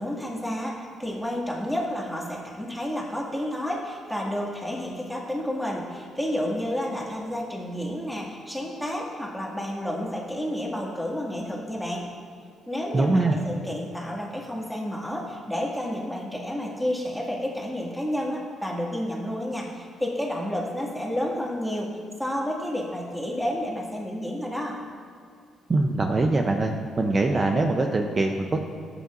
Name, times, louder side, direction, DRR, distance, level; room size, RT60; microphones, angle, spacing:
voice 1, 0.0-12.0 12.7-21.9 22.2-24.8, equal, ahead, -3 dB, 2.1 m, -30 dB
voice 2, 12.9-13.4 25.7-26.7 27.0-28.6, right 2 dB, 30° right, 3 dB, 0.7 m, -22 dB
13.5 x 8.1 x 2.6 m, 2.3 s
cardioid pair, 90°, 0 cm